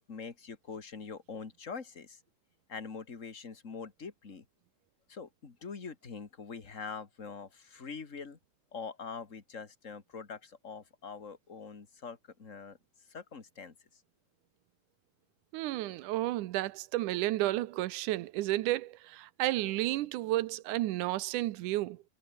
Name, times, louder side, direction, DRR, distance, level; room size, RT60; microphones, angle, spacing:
voice 1, 0.0-2.2 2.7-4.5 5.1-8.4 8.7-12.8 13.1-13.7, left 5 dB, 25° left, 1.9 m, -44 dB
voice 2, 15.5-22.0, right 16 dB, 75° right, 2.1 m, -32 dB
omnidirectional pair, 4.0 m